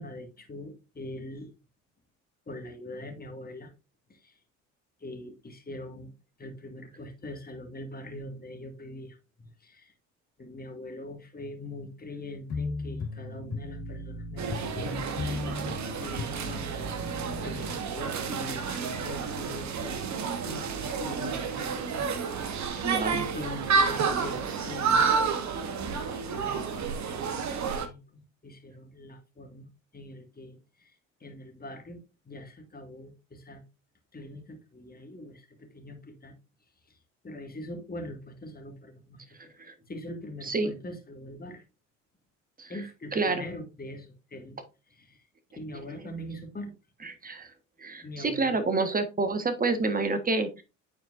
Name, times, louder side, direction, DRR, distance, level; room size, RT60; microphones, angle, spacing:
voice 1, 0.0-1.5 2.5-3.7 4.1-4.4 5.0-6.1 6.4-9.2 9.6-9.9 10.4-16.7 17.0-17.2 17.4-20.1 20.4-22.1 22.4-25.1 26.3-33.6 34.1-36.3 36.9-37.0 37.2-39.2 39.6-41.6 42.7-44.6 44.9-45.2 45.6-46.7 48.0-48.6, left 1 dB, 25° left, 1.9 m, -43 dB
sound 1, 12.5-17.8, left 3 dB, 80° left, 2.0 m, -36 dB
sound 2, 14.4-27.9, right 5 dB, 50° right, 1.1 m, -30 dB
voice 2, 22.8-23.3 39.6-39.7 40.4-40.7 42.6-42.7 43.1-43.4 47.0-47.5 47.8-50.6, right 3 dB, 25° right, 1.3 m, -28 dB
9.8 x 4.4 x 2.5 m
hypercardioid pair, 60°, 37 cm